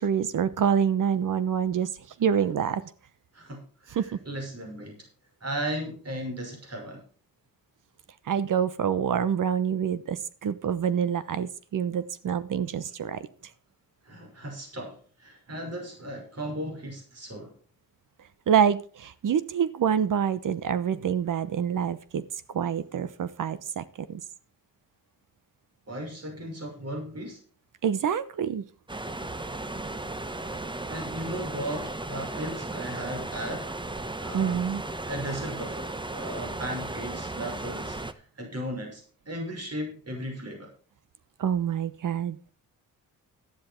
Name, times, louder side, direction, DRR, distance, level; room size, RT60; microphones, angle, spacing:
voice 1, 0.0-1.9 2.2-2.8 3.9-4.2 8.3-13.3 18.5-22.2 22.5-24.2 27.8-28.6 34.3-34.8 41.4-42.5, right 8 dB, 60° right, 15 dB, 1.0 m, -26 dB
voice 2, 3.3-5.0 5.4-7.0 14.0-17.5 25.9-27.4 30.5-33.7 34.2-34.6 35.1-40.7, right 1 dB, 45° right, 2 dB, 5.7 m, -36 dB
sound 1, 28.9-38.1, right 2 dB, 15° right, 1.0 m, -35 dB
12.5 x 10.0 x 4.5 m, 0.41 s
cardioid pair, 65°, 36 cm